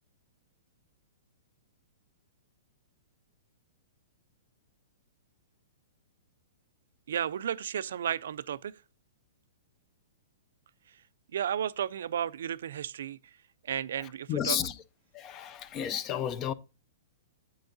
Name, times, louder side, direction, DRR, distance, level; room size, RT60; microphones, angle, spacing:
voice 1, 7.1-8.8 11.3-13.2 13.6-14.6, right 9 dB, 60° right, 0.4 m, -33 dB
voice 2, 14.0-14.8 15.1-16.5, left 9 dB, 20° left, 0.4 m, -32 dB
9.1 x 7.9 x 2.6 m
hypercardioid pair, 175°, 0 cm